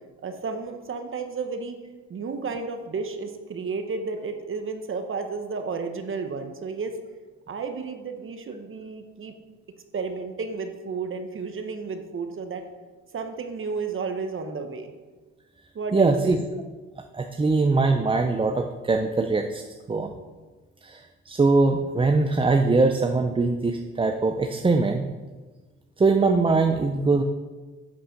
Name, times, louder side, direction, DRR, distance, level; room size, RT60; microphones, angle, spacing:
voice 1, 0.2-1.8 2.1-6.9 7.5-9.3 9.9-12.6 13.1-14.9 15.7-16.4, right 4 dB, 45° right, 6 dB, 1.0 m, -32 dB
voice 2, 15.9-16.4 17.1-19.6 19.9-20.1 20.8-25.0 26.0-27.2, right 3 dB, 20° right, 4 dB, 0.5 m, -22 dB
8.4 x 5.3 x 5.8 m, 1.3 s
cardioid pair, 90°, 30 cm